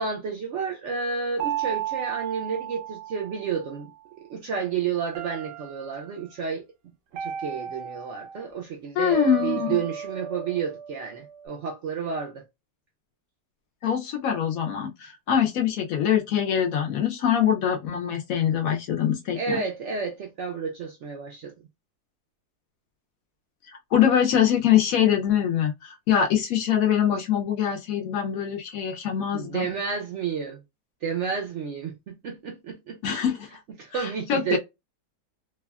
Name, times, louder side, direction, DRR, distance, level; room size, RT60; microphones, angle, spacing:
voice 1, 0.0-3.9 4.3-6.6 7.2-12.4 19.4-21.5 29.3-30.6 31.0-33.0 33.8-34.6, right 6 dB, 70° right, 0.7 m, -31 dB
sound 1, 1.4-3.7 5.1-6.2 7.2-8.4 9.1-11.5, right 9 dB, 90° right, 1.3 m, -34 dB
voice 2, 9.0-9.8 13.8-19.6 23.9-29.7 33.0-33.5 33.9-34.6, left 9 dB, 70° left, 0.9 m, -23 dB
3.3 x 2.2 x 2.2 m
omnidirectional pair, 1.8 m